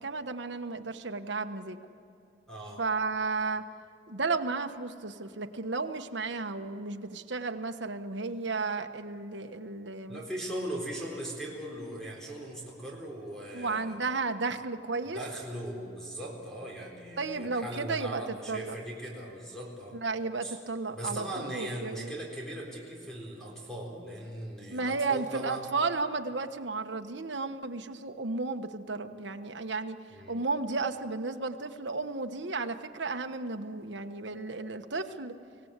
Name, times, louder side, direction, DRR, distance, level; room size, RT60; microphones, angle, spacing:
voice 1, 0.0-1.8 2.8-3.7 4.1-10.2 13.5-15.2 17.2-18.8 19.9-22.1 24.7-30.0 30.3-35.4, right 3 dB, 75° right, 6 dB, 1.3 m, -33 dB
voice 2, 2.5-2.8 10.1-14.0 15.0-20.0 20.4-20.6 20.9-25.7 30.1-30.4, right 1 dB, 5° left, -2 dB, 4.1 m, -39 dB
25.0 x 17.5 x 8.2 m, 2.7 s
head